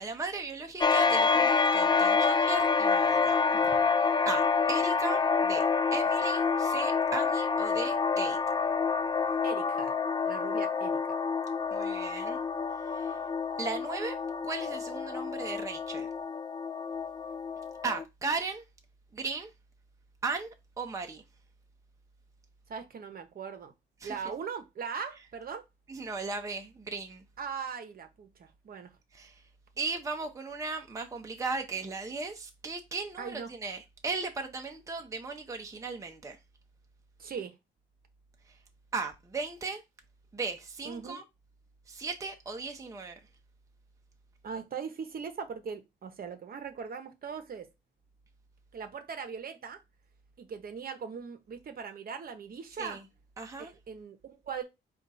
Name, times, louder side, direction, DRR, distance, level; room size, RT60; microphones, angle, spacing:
voice 1, 0.0-3.4 4.3-8.4 11.7-12.4 12.8-13.2 13.6-14.2 14.4-16.1 17.8-18.7 19.1-19.5 20.2-21.2 24.0-24.2 25.9-27.2 29.1-29.4 29.8-36.4 38.9-39.8 40.3-41.2 41.9-43.2 52.8-53.0 53.4-53.7, right 4 dB, 15° right, 0.7 m, -36 dB
sound 1, 0.8-18.0, left 5 dB, 20° left, 0.4 m, -28 dB
voice 2, 9.4-9.9 10.2-11.0 22.7-23.7 24.0-25.6 27.4-28.9 33.2-33.5 37.2-37.5 40.8-41.2 44.4-47.7 48.7-49.8 50.4-53.0 53.6-54.6, right 6 dB, 50° right, 0.9 m, -40 dB
4.3 x 2.5 x 4.0 m
cardioid pair, 90°, 20 cm